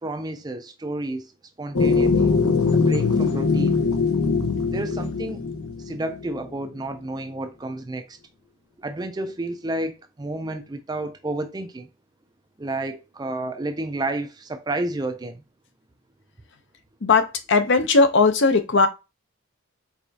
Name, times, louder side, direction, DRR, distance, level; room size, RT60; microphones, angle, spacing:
voice 1, 0.0-1.3 1.6-2.4 2.7-3.8 4.7-5.4 5.8-8.2 8.8-11.9 12.6-15.4, right 2 dB, 20° right, 0.4 m, -31 dB
sound 1, 1.7-6.4, left 4 dB, 85° left, 0.9 m, -21 dB
voice 2, 17.0-18.9, left 4 dB, 55° left, 0.6 m, -18 dB
4.8 x 3.4 x 2.7 m
head